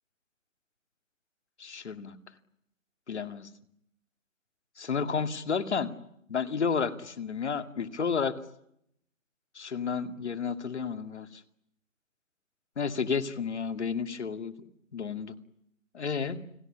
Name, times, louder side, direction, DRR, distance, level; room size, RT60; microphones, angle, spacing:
voice 1, 1.6-2.2 3.1-3.5 4.8-5.9 6.3-8.4 9.6-11.3 12.8-14.5 14.9-15.4 15.9-16.4, left 6 dB, 55° left, 10 dB, 2.3 m, -31 dB
30.0 x 20.0 x 10.0 m, 0.75 s
hypercardioid pair, 170°, 39 cm